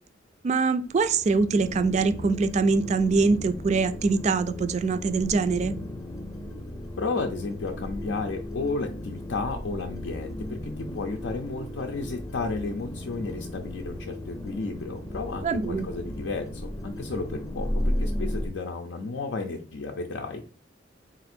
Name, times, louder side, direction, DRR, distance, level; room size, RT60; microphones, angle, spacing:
voice 1, 0.4-5.7 15.4-15.9, right 4 dB, 40° right, 11 dB, 0.3 m, -23 dB
sound 1, 0.8-18.5, left 1 dB, 20° left, 0.5 m, -35 dB
voice 2, 7.0-20.5, left 3 dB, 85° left, 3 dB, 0.5 m, -33 dB
4.1 x 2.5 x 4.3 m, 0.42 s
head